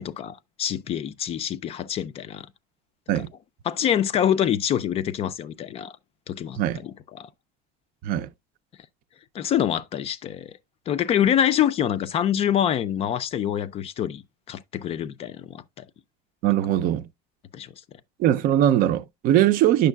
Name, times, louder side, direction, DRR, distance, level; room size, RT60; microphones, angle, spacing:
voice 1, 0.0-2.5 3.7-5.9 6.3-7.3 9.3-10.6 10.9-14.2 14.5-15.8 17.5-17.7, left 10 dB, 30° left, 0.4 m, -25 dB
voice 2, 16.4-17.1 18.2-19.9, right 12 dB, 50° right, 0.5 m, -21 dB
9.0 x 6.4 x 2.2 m
cardioid pair, 155°, 19 cm